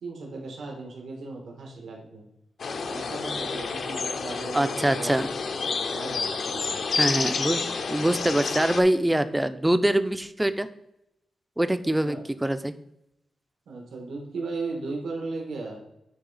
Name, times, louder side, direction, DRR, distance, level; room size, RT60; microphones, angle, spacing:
voice 1, 0.0-2.2 2.8-5.2 5.9-6.8 12.0-12.2 13.7-15.8, right 3 dB, 90° right, 0 dB, 1.3 m, -36 dB
sound 1, 2.6-8.8, left 4 dB, 60° left, 0.6 m, -29 dB
voice 2, 4.5-5.3 6.9-10.7 11.6-12.7, right 1 dB, 10° right, 11 dB, 0.3 m, -24 dB
9.6 x 3.2 x 4.0 m, 0.83 s
wide cardioid pair, 150°, 0 cm